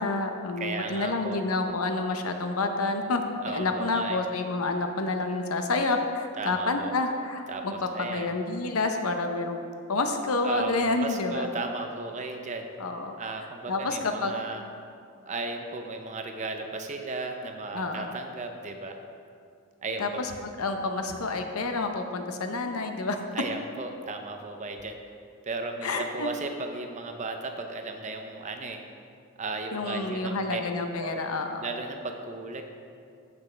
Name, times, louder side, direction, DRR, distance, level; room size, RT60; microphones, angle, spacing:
voice 1, 0.0-3.2 3.5-7.7 8.0-9.6 9.9-11.5 12.8-13.3 13.7-14.3 17.7-18.2 20.0-20.3 20.6-23.2 25.8-26.3 29.7-31.7, left 3 dB, 90° left, 5 dB, 0.8 m, -29 dB
voice 2, 0.6-1.4 3.4-4.2 6.4-6.9 7.5-8.3 10.4-12.7 13.2-14.6 15.3-19.0 19.8-20.2 23.3-25.0 25.4-28.8 29.4-30.6 31.0-31.2 31.6-32.6, right 3 dB, 35° right, 4 dB, 0.6 m, -35 dB
14.0 x 6.1 x 3.4 m, 2.4 s
head